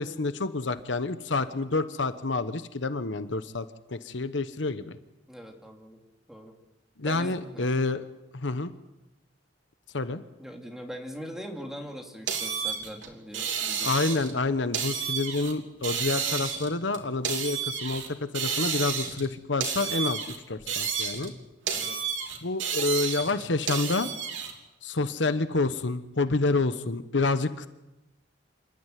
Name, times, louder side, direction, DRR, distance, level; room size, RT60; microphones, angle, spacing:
voice 1, 0.0-5.0 7.0-8.0 8.3-8.7 9.9-10.2 13.8-21.3 22.4-24.1 24.8-27.7, left 3 dB, 75° left, 12 dB, 1.1 m, -28 dB
voice 2, 5.3-6.0 6.3-6.5 7.0-7.7 10.4-13.9 21.7-22.0, equal, ahead, 2 dB, 2.8 m, -41 dB
sound 1, 12.3-14.4 14.7-15.5 15.8-18.1 18.3-19.3 19.6-21.3 21.7-24.5, right 7 dB, 90° right, 3.2 m, -31 dB
27.5 x 13.5 x 9.3 m, 0.97 s
head